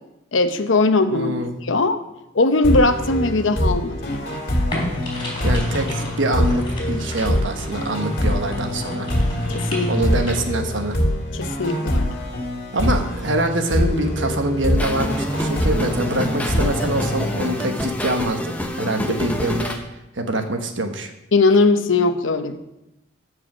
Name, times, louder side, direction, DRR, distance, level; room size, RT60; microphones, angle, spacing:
voice 1, 0.3-1.3 1.6-2.0 2.3-4.4 9.5-9.9 11.3-12.2 19.1-19.2 21.3-22.6, left 3 dB, 80° left, 9 dB, 0.8 m, -19 dB
voice 2, 1.1-1.5 5.4-9.1 9.9-11.0 12.7-19.7 20.2-21.1, right 1 dB, 75° right, 6 dB, 1.2 m, -24 dB
sound 1, 2.6-18.1, equal, 50° left, 2.2 m, -24 dB
sound 2, 4.7-10.3, left 1 dB, 25° left, 3.3 m, -32 dB
sound 3, 14.8-19.8, equal, 10° left, 0.9 m, -27 dB
14.0 x 4.9 x 6.1 m, 0.91 s
head